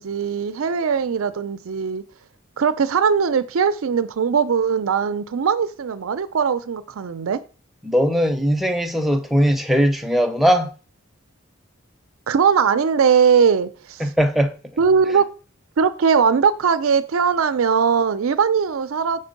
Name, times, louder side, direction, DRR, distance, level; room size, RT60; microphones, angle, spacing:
voice 1, 0.0-2.0 2.6-7.4 12.3-14.0 14.8-15.3 15.8-19.2, right 6 dB, 85° right, 0.5 m, -20 dB
voice 2, 7.8-10.7 14.0-14.6, equal, ahead, 0.6 m, -19 dB
5.4 x 4.4 x 5.2 m
head